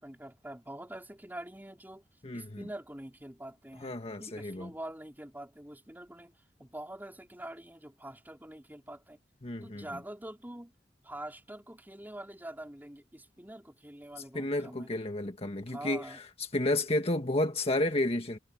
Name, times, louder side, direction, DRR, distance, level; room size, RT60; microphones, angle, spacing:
voice 1, 0.0-2.0 2.3-6.3 6.6-9.2 9.6-10.7 11.0-14.9 15.7-16.2, right 1 dB, 10° right, 4.0 m, -45 dB
voice 2, 2.2-2.7 3.8-4.7 9.4-9.8 14.3-16.2 16.5-18.4, left 1 dB, 35° left, 1.5 m, -31 dB
head